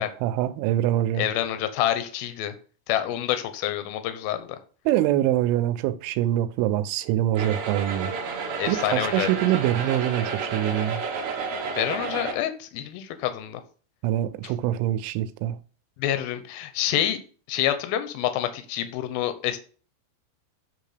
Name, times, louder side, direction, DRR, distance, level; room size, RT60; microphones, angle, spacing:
voice 1, 0.0-1.3 4.9-8.1 8.7-11.0 14.0-15.6, right 13 dB, 90° right, 3.1 m, -24 dB
voice 2, 1.2-2.6 2.9-4.5 8.6-9.3 11.8-13.6 16.0-17.2 17.5-19.6, left 12 dB, 80° left, 2.2 m, -27 dB
sound 1, 7.3-12.3, right 5 dB, 70° right, 1.7 m, -31 dB
9.8 x 3.4 x 6.6 m
omnidirectional pair, 5.4 m